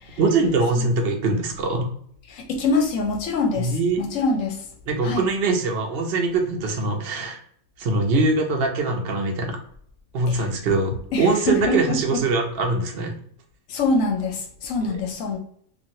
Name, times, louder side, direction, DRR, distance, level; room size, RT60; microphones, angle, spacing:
voice 1, 0.2-1.9 3.6-4.0 4.9-7.4 7.8-9.6 10.1-10.9 11.2-13.2 14.9-15.0, right 3 dB, 55° right, 3 dB, 0.7 m, -22 dB
voice 2, 2.3-4.6 5.0-5.2 10.3-10.5 11.1-12.2 13.7-15.4, left 3 dB, 70° left, 3 dB, 0.9 m, -25 dB
3.0 x 2.5 x 2.6 m, 0.64 s
omnidirectional pair, 1.5 m